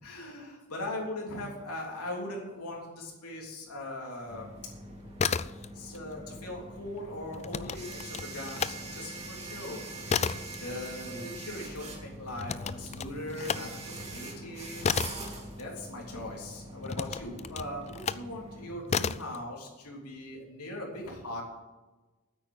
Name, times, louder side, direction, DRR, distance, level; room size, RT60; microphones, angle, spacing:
voice 1, 0.0-4.5 5.7-9.8 10.6-14.8 15.6-21.4, left 1 dB, 85° left, -2 dB, 3.4 m, -40 dB
sound 1, 4.3-18.7, right 2 dB, 30° right, 3.2 m, -43 dB
sound 2, 5.0-6.0 6.3-8.8 9.2-16.2 16.8-18.3 18.9-19.4, left 6 dB, 30° left, 0.4 m, -33 dB
9.6 x 8.6 x 8.8 m, 1.1 s
head